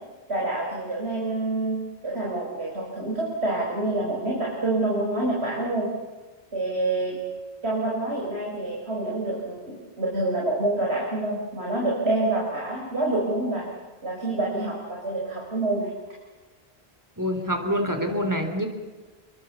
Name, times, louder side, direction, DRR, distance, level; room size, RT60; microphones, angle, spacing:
voice 1, 0.3-5.9 6.5-7.2 7.6-13.7 14.0-15.9, right 2 dB, 80° right, -3 dB, 5.3 m, -27 dB
voice 2, 17.2-18.7, equal, 15° right, 5 dB, 3.7 m, -26 dB
28.5 x 23.0 x 7.0 m, 1.3 s
omnidirectional pair, 1.1 m